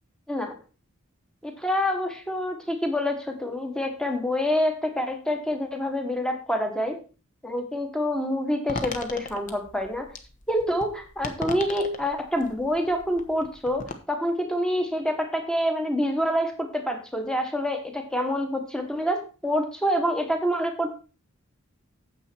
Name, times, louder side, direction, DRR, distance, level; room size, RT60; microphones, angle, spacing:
voice 1, 1.4-7.0 7.4-10.1 10.5-20.9, equal, 5° left, 5 dB, 1.3 m, -27 dB
sound 1, 8.7-14.0, left 3 dB, 35° left, 1.0 m, -38 dB
9.0 x 7.2 x 4.4 m, 0.35 s
head